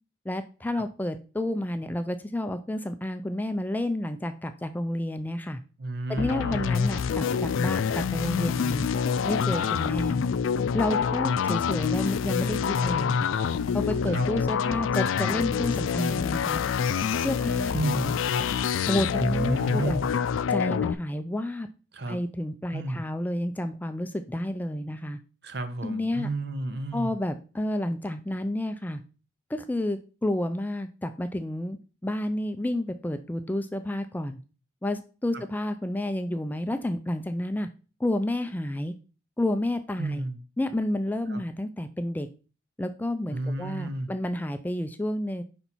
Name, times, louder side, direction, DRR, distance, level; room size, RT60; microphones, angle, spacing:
voice 1, 0.3-5.6 6.1-8.9 9.2-10.2 10.7-13.3 13.7-16.6 17.2-18.1 18.9-20.0 20.5-21.7 22.1-25.2 25.8-26.3 26.9-29.0 29.5-31.8 32.0-34.4 34.8-37.7 38.0-38.9 39.4-40.2 40.6-42.3 42.8-45.4, left 1 dB, 10° left, 9 dB, 0.3 m, -30 dB
voice 2, 5.8-6.8 14.1-14.3 17.7-18.1 19.2-20.1 21.9-22.2 22.7-23.0 25.4-27.1 35.3-35.4 40.0-40.4 41.3-41.4 43.3-44.1, right 2 dB, 60° right, 9 dB, 0.8 m, -31 dB
sound 1, 6.2-20.9, left 6 dB, 85° left, 0.4 m, -26 dB
5.4 x 4.4 x 4.1 m, 0.35 s
head